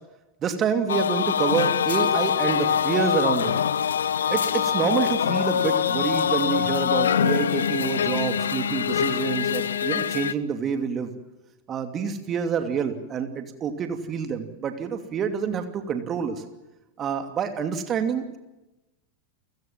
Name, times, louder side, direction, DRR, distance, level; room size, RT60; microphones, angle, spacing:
voice 1, 0.4-3.5 4.3-11.1 11.7-16.4 17.0-18.4, right 7 dB, 25° right, 8 dB, 2.7 m, -27 dB
sound 1, 0.9-10.3, left 8 dB, 65° left, 1.0 m, -24 dB
29.5 x 17.5 x 7.4 m, 1.0 s
figure-of-eight pair, 90°, 0 cm